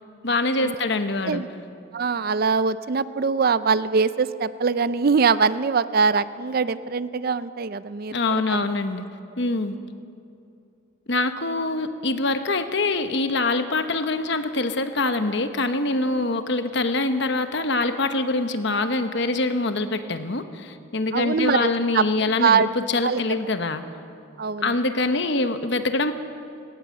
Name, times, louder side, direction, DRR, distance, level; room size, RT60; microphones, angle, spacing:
voice 1, 0.2-1.4 8.1-9.0 9.4-9.8 11.1-23.8 24.6-26.1, left 2 dB, 55° left, 8 dB, 1.1 m, -24 dB
voice 2, 1.9-8.6 21.1-22.7 23.0-23.2 24.4-24.7, right 5 dB, 45° right, 15 dB, 0.4 m, -23 dB
19.0 x 18.0 x 7.7 m, 2.5 s
head